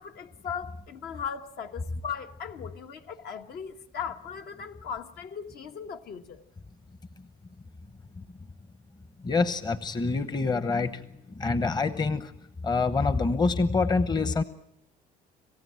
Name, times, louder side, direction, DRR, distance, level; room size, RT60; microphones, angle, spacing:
voice 1, 0.0-6.4, left 7 dB, 70° left, 1.4 m, -38 dB
voice 2, 9.2-12.3 12.6-14.4, left 4 dB, 25° left, 0.9 m, -26 dB
27.5 x 15.5 x 7.6 m
cardioid pair, 110°, 17 cm